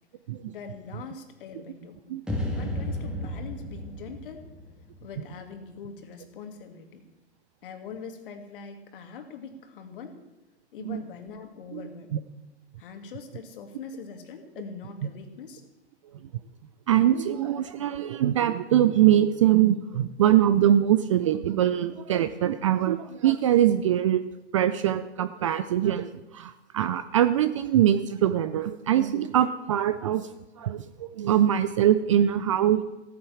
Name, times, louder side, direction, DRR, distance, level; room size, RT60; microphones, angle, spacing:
voice 1, 0.5-2.0 2.3-4.5 5.0-7.1 7.6-10.2 10.7-12.2 12.8-15.6, left 5 dB, 50° left, 6 dB, 2.2 m, -42 dB
sound 1, 2.3-5.5, left 1 dB, ahead, 1.9 m, -33 dB
voice 2, 16.9-24.2 24.5-30.3 30.6-32.8, right 11 dB, 30° right, 12 dB, 0.4 m, -23 dB
15.5 x 9.5 x 7.1 m, 1.0 s
figure-of-eight pair, 125°, 35 cm